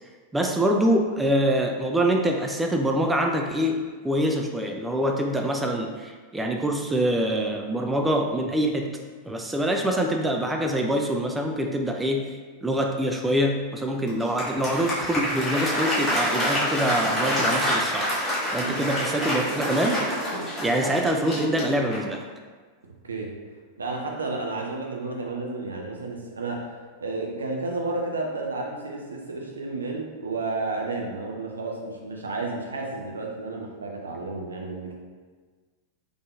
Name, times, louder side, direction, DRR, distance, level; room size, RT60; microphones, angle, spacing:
voice 1, 0.3-8.9 9.2-18.1 18.5-20.0 20.6-22.2, equal, 10° right, 2 dB, 0.3 m, -25 dB
Applause, 14.1-22.2, equal, 10° left, 1.4 m, -27 dB
voice 2, 23.8-34.9, right 3 dB, 70° right, 0 dB, 0.5 m, -32 dB
3.6 x 3.4 x 2.5 m, 1.5 s
figure-of-eight pair, 90°, 0 cm